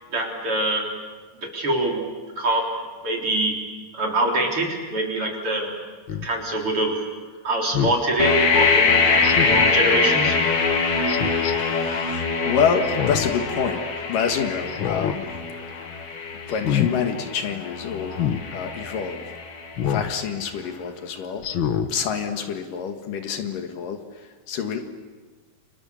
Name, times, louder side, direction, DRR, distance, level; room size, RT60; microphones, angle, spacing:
voice 1, 0.1-0.9 1.4-2.8 3.0-3.6 3.9-5.7 6.2-7.0 7.4-10.4, right 1 dB, 40° right, 0 dB, 4.6 m, -24 dB
Speech synthesizer, 6.1-6.3 7.7-8.0 9.2-9.7 11.1-11.5 12.8-13.4 13.8-13.9 14.7-15.2 15.6-15.9 16.5-16.9 18.1-18.4 19.8-20.1 20.6-20.7 21.4-21.9 22.4-22.5, left 9 dB, 90° left, 1.0 m, -26 dB
sound 1, 8.2-20.0, left 5 dB, 45° left, 2.9 m, -23 dB
voice 2, 11.6-13.8 14.1-15.3 16.5-18.2 18.5-19.2 19.8-21.4 21.9-24.9, left 6 dB, 70° left, 6 dB, 3.1 m, -27 dB
30.0 x 25.5 x 7.1 m, 1.4 s
omnidirectional pair, 4.0 m